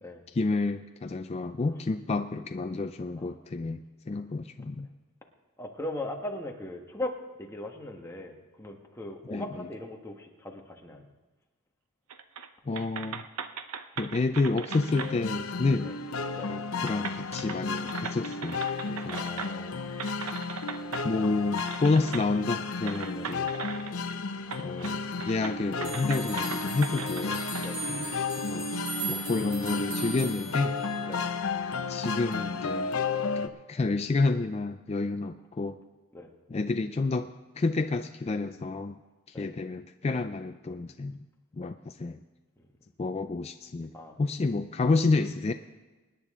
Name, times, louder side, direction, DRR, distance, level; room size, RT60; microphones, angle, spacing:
voice 1, 0.3-4.9 9.3-9.7 12.7-13.2 14.0-15.9 16.5-18.6 18.9-19.3 21.0-23.5 24.6-27.4 27.9-28.1 28.5-28.7 29.1-30.8 31.9-32.9 33.4-35.8 36.5-37.3 37.6-39.0 39.4-41.2 41.6-42.2 43.0-43.9 44.2-45.5, left 3 dB, 30° left, 7 dB, 0.4 m, -29 dB
voice 2, 5.6-11.1 15.8-16.0 16.3-16.5 19.1-19.7 23.1-23.3 27.6-27.8 31.0-31.2 36.1-36.3 39.3-39.5 42.6-42.7 43.9-44.2, left 1 dB, 10° left, 1 dB, 1.4 m, -39 dB
sound 1, 12.1-12.5 12.7-15.1 16.3-16.4 16.8-19.7 20.0-21.1 21.6-22.3 22.9-24.1 24.5-25.0 25.2-27.7, right 6 dB, 90° right, 0.7 m, -39 dB
sound 2, 14.7-33.5, left 4 dB, 70° left, 0.7 m, -33 dB
sound 3, 25.8-31.1, right 4 dB, 60° right, 3.4 m, -39 dB
24.5 x 9.9 x 3.7 m, 1.2 s
head